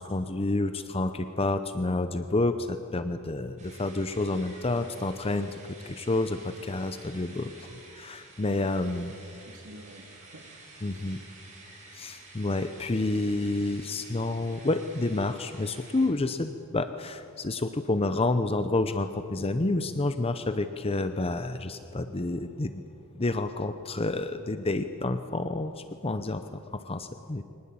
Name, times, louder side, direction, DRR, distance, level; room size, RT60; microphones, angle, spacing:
voice 1, 0.0-5.5 5.8-9.1 10.8-11.2 11.9-22.8 23.2-26.4 26.7-27.4, left 2 dB, 30° left, 10 dB, 0.7 m, -29 dB
sound 1, 3.6-16.1, right 3 dB, 35° right, 5.6 m, -51 dB
voice 2, 8.6-10.6, right 1 dB, 70° right, 4 dB, 2.3 m, -50 dB
23.5 x 19.5 x 8.6 m, 2.6 s
head